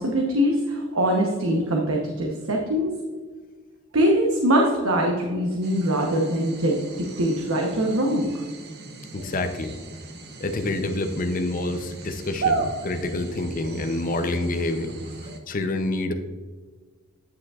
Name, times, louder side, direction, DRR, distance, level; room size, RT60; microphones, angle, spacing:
voice 1, 0.0-2.9 3.9-8.5, equal, 75° right, 0 dB, 1.0 m, -23 dB
sound 1, 5.6-15.4, right 4 dB, 50° right, 0.9 m, -35 dB
voice 2, 9.1-9.8 10.4-14.9 15.5-16.1, left 2 dB, 40° left, 7 dB, 0.6 m, -27 dB
9.7 x 7.2 x 2.4 m, 1.4 s
head